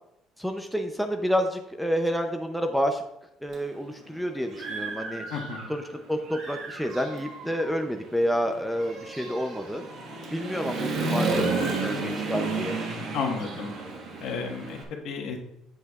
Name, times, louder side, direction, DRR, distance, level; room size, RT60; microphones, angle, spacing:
voice 1, 0.4-3.0 3.4-5.2 5.7-9.9 10.3-12.8, equal, ahead, 3 dB, 0.5 m, -29 dB
Human voice / Motorcycle, 3.5-3.6 4.1-5.9 6.2-14.8, right 3 dB, 45° right, 1.5 m, -32 dB
voice 2, 5.3-5.7 13.1-13.7 14.2-15.4, left 5 dB, 60° left, 2 dB, 1.3 m, -32 dB
9.2 x 7.9 x 2.4 m, 0.79 s
cardioid pair, 160°, 0 cm